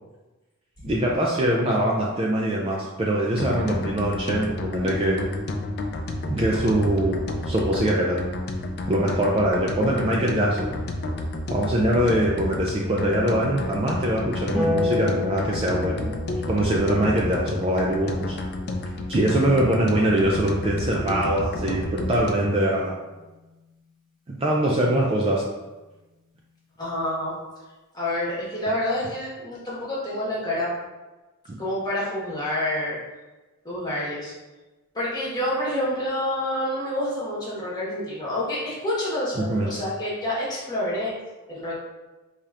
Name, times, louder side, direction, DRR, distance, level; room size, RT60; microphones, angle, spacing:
voice 1, 0.8-5.3 6.3-8.2 8.9-10.7 11.5-16.1 16.5-18.4 19.1-23.0 24.3-25.4 31.5-31.6 39.4-39.7, right 1 dB, 25° right, -2 dB, 0.3 m, -23 dB
sound 1, 3.4-22.6, left 1 dB, 45° left, 0.4 m, -30 dB
Harp, 14.5-21.1 22.7-23.7, left 2 dB, ahead, 0.9 m, -33 dB
voice 2, 26.8-27.3 27.9-30.7 31.6-33.0 33.6-34.3 34.9-41.1 41.5-41.7, left 1 dB, 20° left, -7 dB, 1.2 m, -28 dB
4.9 x 2.8 x 2.4 m, 1.1 s
head